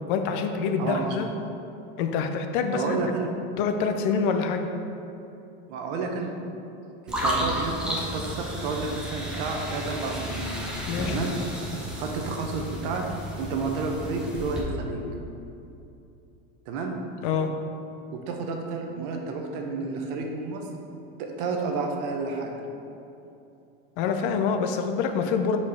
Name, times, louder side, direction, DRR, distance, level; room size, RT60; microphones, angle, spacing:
voice 1, 0.1-1.3 2.0-3.0 3.6-4.7 10.9-11.2 17.2-17.6 24.0-25.6, left 5 dB, 55° left, 6 dB, 0.6 m, -26 dB
voice 2, 2.7-3.3 5.7-6.3 7.0-10.5 11.0-11.3 12.0-13.0 13.4-15.0 16.7-17.0 18.1-20.7 21.2-22.5, right 4 dB, 55° right, 2 dB, 0.9 m, -30 dB
sound 1, 7.1-14.6, equal, 5° right, 0.7 m, -32 dB
4.8 x 4.3 x 5.6 m, 2.8 s
supercardioid pair, 150°, 31 cm